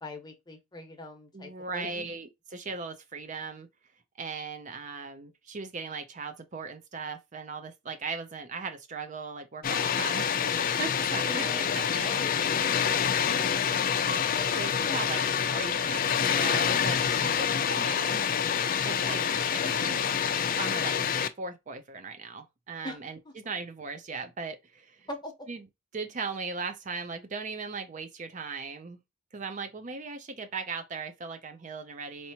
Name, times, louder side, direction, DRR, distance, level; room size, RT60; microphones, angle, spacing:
voice 1, 0.0-2.1 11.1-15.0 15.5-15.9 17.1-17.6 22.8-23.3 25.1-25.3, left 1 dB, 20° left, 1.0 m, -43 dB
voice 2, 1.3-3.7 4.2-10.3 10.8-12.2 14.6-15.2 15.5-18.3 18.8-20.0 20.6-25.1 25.5-25.6 25.9-29.0 29.3-32.3, right 4 dB, 40° right, 0.5 m, -38 dB
Water, 9.6-21.3, left 7 dB, 45° left, 0.4 m, -27 dB
4.4 x 2.8 x 2.7 m
head